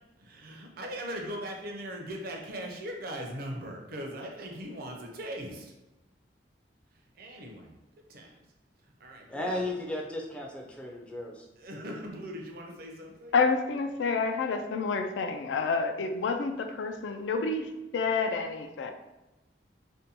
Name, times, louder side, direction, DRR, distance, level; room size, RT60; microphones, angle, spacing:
voice 1, 0.2-5.7 6.9-7.8 8.1-8.3 8.8-9.7 11.6-13.3, equal, 55° right, 1 dB, 0.5 m, -40 dB
voice 2, 9.3-11.5, left 1 dB, 5° left, -1 dB, 0.3 m, -35 dB
voice 3, 13.3-18.9, left 4 dB, 90° left, 7 dB, 0.3 m, -29 dB
2.6 x 2.2 x 2.7 m, 1.0 s
head